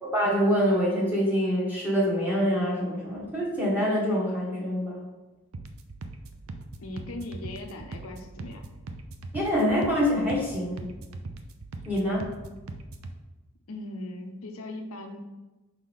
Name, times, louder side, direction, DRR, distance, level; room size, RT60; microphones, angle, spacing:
voice 1, 0.0-5.0 9.3-10.9 11.9-12.3, equal, 10° right, -6 dB, 1.7 m, -25 dB
sound 1, 5.5-13.1, right 2 dB, 70° right, 0.6 m, -41 dB
voice 2, 6.8-8.6 13.7-15.2, left 2 dB, 75° left, 3 dB, 0.8 m, -39 dB
6.1 x 4.8 x 3.6 m, 1.1 s
head